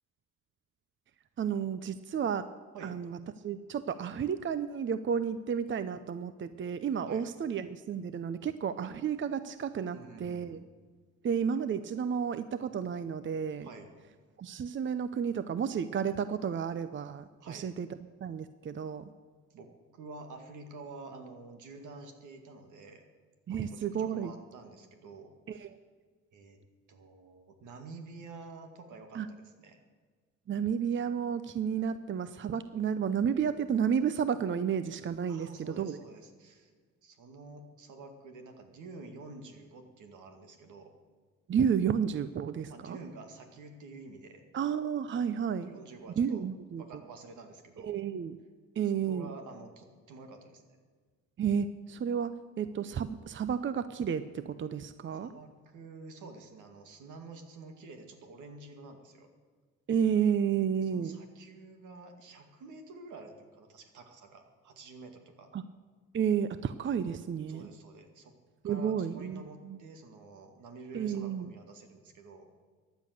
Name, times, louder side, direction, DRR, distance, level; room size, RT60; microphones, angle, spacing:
voice 1, 1.4-2.5 2.8-3.2 3.4-10.6 11.2-13.7 14.4-17.9 18.2-19.1 23.5-24.3 25.5-25.8 29.1-29.3 30.5-36.0 41.5-43.0 44.5-45.7 46.2-46.8 47.8-48.4 48.8-49.3 51.4-55.3 59.9-61.2 65.5-65.6 66.1-67.7 68.6-69.8 70.9-71.5, right 7 dB, 40° right, 12 dB, 0.6 m, -31 dB
voice 2, 9.8-10.6 13.6-13.9 17.4-17.7 19.5-23.0 23.5-25.7 26.3-26.6 26.9-29.8 35.3-36.7 37.0-40.9 42.7-44.4 45.6-46.5 46.8-48.0 48.8-50.8 55.1-59.3 60.8-65.5 67.5-68.3 68.6-72.5, right 3 dB, 80° right, 5 dB, 2.2 m, -49 dB
15.5 x 10.5 x 6.6 m, 1.6 s
cardioid pair, 90°, 30 cm